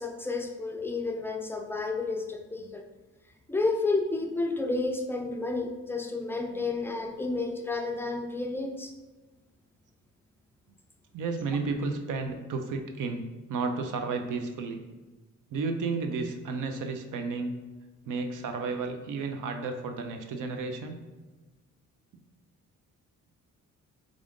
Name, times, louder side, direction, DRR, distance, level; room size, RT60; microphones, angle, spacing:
voice 1, 0.0-2.8 3.5-8.9, left 3 dB, 5° left, 4 dB, 0.4 m, -31 dB
voice 2, 11.1-14.8 15.5-17.6 18.0-21.0, right 4 dB, 75° right, 5 dB, 0.6 m, -32 dB
3.7 x 2.5 x 3.5 m, 1.2 s
cardioid pair, 95°, 31 cm